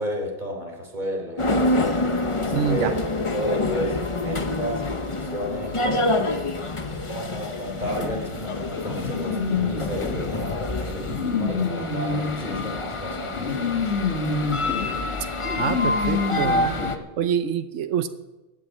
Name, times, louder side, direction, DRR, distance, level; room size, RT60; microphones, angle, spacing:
voice 1, 0.0-2.0 2.4-3.0 3.3-6.4 7.1-11.1 11.4-13.9, equal, 40° right, 0 dB, 3.7 m, -32 dB
sound 1, 1.4-17.0, left 2 dB, 30° left, 0.9 m, -27 dB
voice 2, 2.5-2.9 15.6-16.7 17.2-18.1, right 8 dB, 80° right, 9 dB, 1.1 m, -25 dB
sound 2, 7.8-16.9, left 4 dB, 70° left, 2.8 m, -28 dB
15.5 x 9.4 x 7.3 m, 1.1 s
omnidirectional pair, 1.2 m